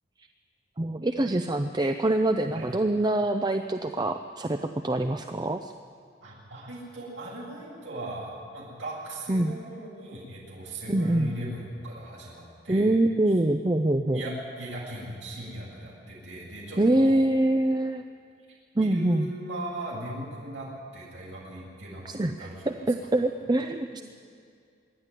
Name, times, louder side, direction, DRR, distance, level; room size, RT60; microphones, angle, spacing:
voice 1, 0.8-5.7 9.3-9.5 10.9-11.3 12.7-14.2 16.8-18.0 18.8-19.3 22.0-24.0, right 1 dB, 20° right, 7 dB, 0.5 m, -25 dB
voice 2, 6.2-12.9 14.1-17.3 18.8-22.8, right 1 dB, 85° right, -7 dB, 7.9 m, -38 dB
25.0 x 11.5 x 10.0 m, 2.3 s
head